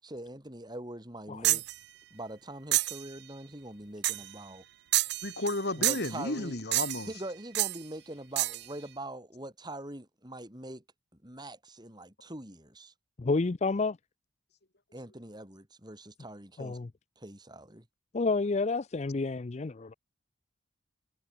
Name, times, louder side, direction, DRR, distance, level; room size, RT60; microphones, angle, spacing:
voice 1, 0.0-1.6 2.1-4.6 5.8-6.6 7.1-10.8 11.2-12.9 14.9-16.8 17.2-17.8, right 1 dB, 20° right, 6.0 m, -43 dB
voice 2, 1.3-1.6 13.2-14.0 16.6-16.9 18.1-19.9, left 3 dB, 35° left, 0.5 m, -30 dB
sound 1, 1.4-1.7 2.7-3.0 4.0-4.3 4.9-5.6 5.8-6.2 6.7-7.1 7.5-7.8 8.4-8.6, right 18 dB, 55° right, 0.4 m, -28 dB
voice 3, 5.2-7.1, left 2 dB, 55° left, 2.9 m, -33 dB
head